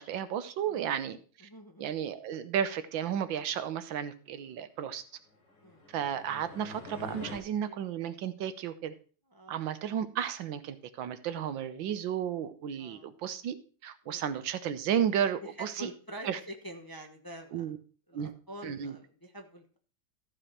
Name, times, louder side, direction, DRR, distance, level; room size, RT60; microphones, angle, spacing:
voice 1, 0.0-1.2 1.8-5.0 5.9-8.9 9.5-13.6 13.8-15.9 16.2-16.4 17.5-17.8 18.1-18.3 18.6-18.9, right 9 dB, 85° right, 12 dB, 1.6 m, -33 dB
voice 2, 0.7-1.9 5.6-5.9 7.6-7.8 9.3-9.6 12.8-13.1 14.0-14.4 15.4-17.7 18.1-19.8, right 1 dB, 15° left, 3 dB, 0.8 m, -47 dB
sound 1, 5.4-7.4, left 2 dB, 70° left, 4.3 m, -45 dB
14.0 x 5.0 x 5.7 m, 0.40 s
omnidirectional pair, 2.0 m